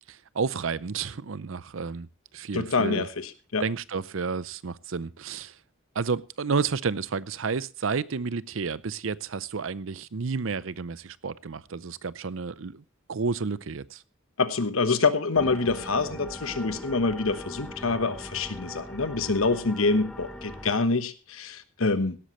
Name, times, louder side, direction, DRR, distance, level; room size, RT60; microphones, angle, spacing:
voice 1, 0.1-2.1 2.3-3.1 3.6-5.6 5.9-12.8 13.1-14.0, right 5 dB, 70° right, 0.6 m, -31 dB
voice 2, 2.5-3.7 14.4-22.2, left 3 dB, 80° left, 1.1 m, -26 dB
sound 1, 15.3-20.7, left 1 dB, 5° left, 1.5 m, -40 dB
17.0 x 13.0 x 3.1 m
head